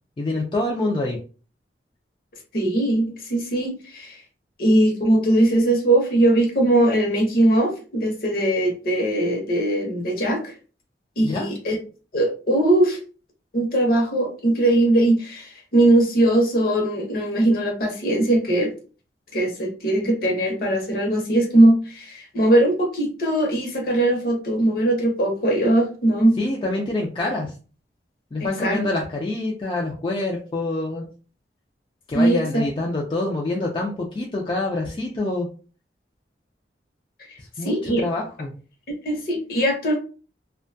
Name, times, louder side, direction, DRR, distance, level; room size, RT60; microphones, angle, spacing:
voice 1, 0.2-1.2 11.2-11.5 26.4-27.5 28.3-31.1 32.1-35.5 37.6-38.5, left 2 dB, 25° left, -2 dB, 0.4 m, -26 dB
voice 2, 2.5-4.2 4.6-10.5 11.2-11.8 12.1-13.0 13.5-18.7 19.3-26.3 28.4-28.8 32.1-32.6 37.3-38.0 39.0-40.0, right 1 dB, 55° left, 2 dB, 0.8 m, -20 dB
2.6 x 2.2 x 2.5 m, 0.36 s
head